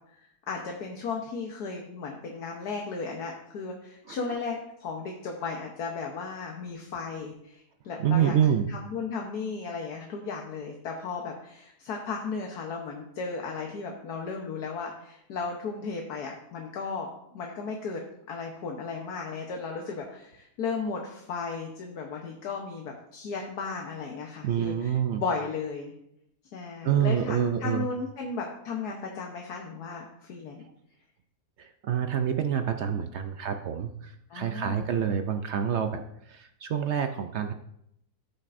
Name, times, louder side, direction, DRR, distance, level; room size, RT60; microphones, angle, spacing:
voice 1, 0.5-8.3 8.7-18.0 18.3-24.9 25.2-25.9 26.5-30.6 34.3-34.9, left 4 dB, 75° left, 1 dB, 1.5 m, -35 dB
voice 2, 4.1-4.4 8.0-8.7 24.4-25.2 26.8-27.8 30.6-30.7 31.6-37.5, right 9 dB, 70° right, 7 dB, 0.6 m, -27 dB
15.5 x 6.6 x 2.6 m, 0.77 s
omnidirectional pair, 1.7 m